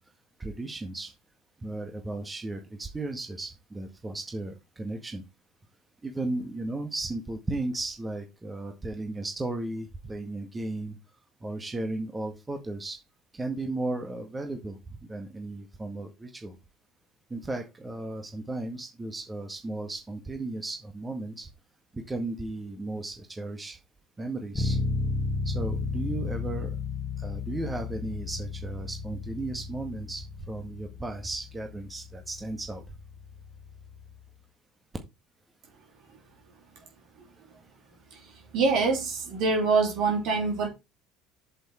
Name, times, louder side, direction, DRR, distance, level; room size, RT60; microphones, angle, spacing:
voice 1, 0.4-1.1 1.6-5.2 6.0-11.0 11.4-13.0 13.3-16.6 17.3-21.5 21.9-23.8 24.2-24.8 25.5-26.8 27.2-32.8, right 2 dB, 15° right, 1.8 m, -35 dB
Bass guitar, 24.5-34.3, left 3 dB, 20° left, 1.8 m, -34 dB
voice 2, 38.5-40.7, right 4 dB, 55° right, 3.3 m, -25 dB
7.7 x 6.7 x 4.3 m
figure-of-eight pair, 65°, 0 cm